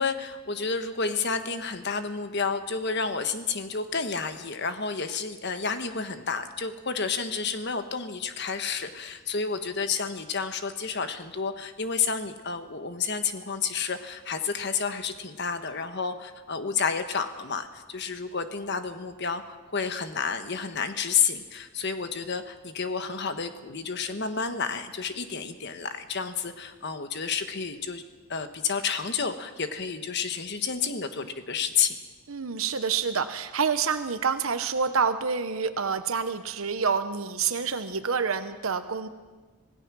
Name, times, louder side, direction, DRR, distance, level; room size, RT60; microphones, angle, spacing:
voice 1, 0.0-28.0 28.3-32.0, left 5 dB, 55° left, 8 dB, 1.4 m, -30 dB
voice 2, 32.3-39.1, right 5 dB, 80° right, 9 dB, 1.0 m, -27 dB
26.5 x 17.0 x 6.2 m, 1.3 s
head